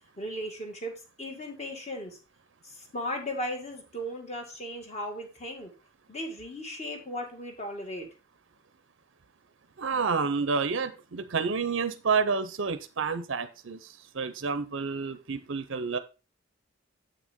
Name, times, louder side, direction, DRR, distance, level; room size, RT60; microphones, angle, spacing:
voice 1, 0.2-2.2 2.6-5.7 6.1-8.1, equal, 30° left, 2 dB, 1.7 m, -36 dB
voice 2, 9.8-16.0, right 5 dB, 60° right, 11 dB, 0.6 m, -29 dB
7.9 x 6.4 x 3.6 m, 0.32 s
head